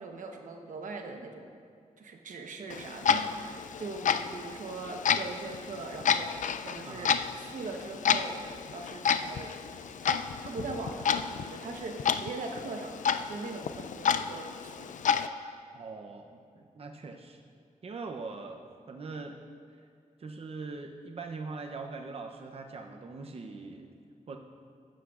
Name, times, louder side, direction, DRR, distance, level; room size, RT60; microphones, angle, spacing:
voice 1, 0.0-1.5 2.0-6.3 6.6-8.4 8.7-9.6 10.0-14.9, right 3 dB, 85° right, 3 dB, 1.1 m, -41 dB
Clock, 2.7-15.3, left 7 dB, 75° left, 0.4 m, -31 dB
voice 2, 6.8-7.2 15.7-17.4 17.8-19.4 20.2-23.9 24.3-24.4, right 3 dB, 50° right, 3 dB, 0.7 m, -42 dB
15.5 x 11.5 x 2.5 m, 2.4 s
wide cardioid pair, 85°, 13 cm